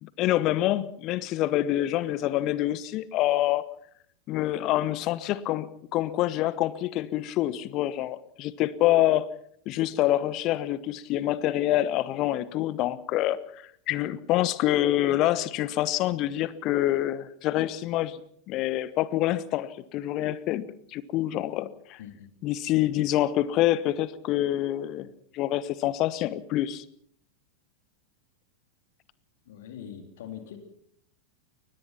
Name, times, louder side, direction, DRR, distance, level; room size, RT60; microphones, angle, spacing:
voice 1, 0.0-3.7 4.3-9.3 9.7-13.4 13.9-18.2 18.5-20.6 20.9-22.0 22.4-25.1 25.3-26.8, left 14 dB, 40° left, 18 dB, 1.1 m, -26 dB
voice 2, 29.5-30.6, left 9 dB, 55° left, 6 dB, 3.6 m, -42 dB
22.5 x 20.0 x 5.9 m, 0.65 s
figure-of-eight pair, 90°, 0 cm